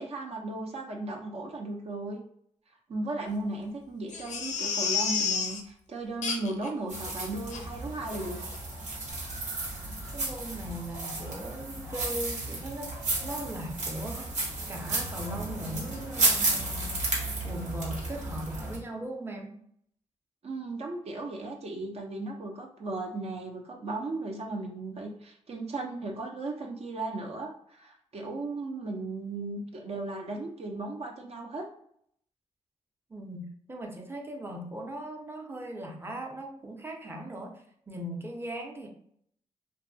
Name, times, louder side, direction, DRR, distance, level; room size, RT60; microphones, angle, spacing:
voice 1, 0.0-2.2 2.9-8.4 20.4-31.6, right 2 dB, 60° right, 1 dB, 0.6 m, -36 dB
Crying sobbing, 4.1-5.6 6.2-6.7 7.1-7.2 7.5-7.6 8.1-8.3 8.5-8.6, left 6 dB, 85° left, 0.4 m, -30 dB
sound 1, 6.9-18.8, right 2 dB, 80° right, 1.0 m, -33 dB
voice 2, 10.1-12.9 13.2-17.0 17.4-19.5 33.1-38.9, right 1 dB, 20° right, 1 dB, 0.6 m, -39 dB
2.6 x 2.3 x 2.6 m, 0.68 s
cardioid pair, 60°, 12 cm